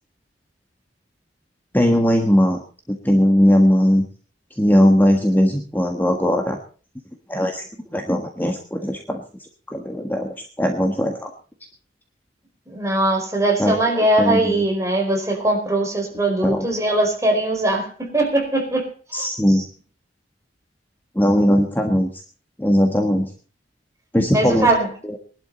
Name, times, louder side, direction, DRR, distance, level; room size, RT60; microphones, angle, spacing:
voice 1, 1.7-2.6 2.9-4.0 4.6-6.6 7.3-7.6 7.9-9.2 9.7-11.3 13.6-13.8 14.2-14.6 16.4-16.7 19.1-19.6 21.1-22.1 22.6-23.3 24.1-24.7 25.0-25.2, equal, 10° left, 3 dB, 1.5 m, -19 dB
voice 2, 12.7-19.3 24.3-24.9, right 1 dB, 15° right, 1 dB, 4.7 m, -21 dB
21.0 x 12.0 x 4.0 m, 0.39 s
head